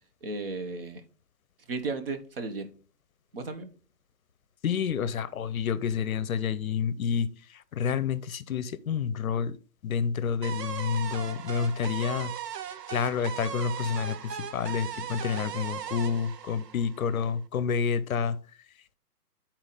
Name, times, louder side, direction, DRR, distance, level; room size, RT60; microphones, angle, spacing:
voice 1, 0.2-1.0 1.7-2.7 3.3-3.7, right 3 dB, 35° right, 1.0 m, -34 dB
voice 2, 4.6-7.3 7.8-9.6 9.8-12.3 12.9-18.4, left 7 dB, 60° left, 0.7 m, -29 dB
sound 1, 10.4-17.4, right 9 dB, 80° right, 0.8 m, -38 dB
9.7 x 4.4 x 3.9 m
hypercardioid pair, 155°, 48 cm